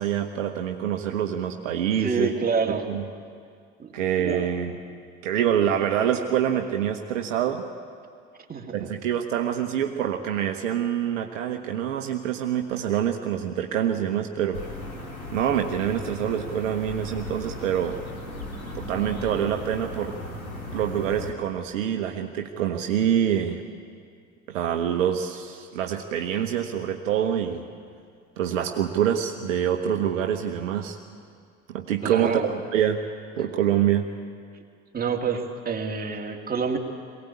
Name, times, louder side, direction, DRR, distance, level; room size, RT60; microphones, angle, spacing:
voice 1, 0.0-2.3 2.7-3.0 3.9-4.8 5.2-7.7 8.7-14.6 15.3-18.0 18.7-20.1 20.7-23.6 24.5-27.7 28.4-31.0 31.7-33.0 33.3-34.1, right 9 dB, 65° right, 5 dB, 1.2 m, -26 dB
voice 2, 2.0-2.9 3.8-3.9 4.2-4.5 8.5-8.9 32.0-32.4 34.9-36.8, right 5 dB, 20° right, 1 dB, 2.5 m, -27 dB
sound 1, 14.5-21.3, left 1 dB, 90° left, 2.6 m, -36 dB
22.5 x 17.5 x 8.5 m, 2.1 s
figure-of-eight pair, 65°, 40 cm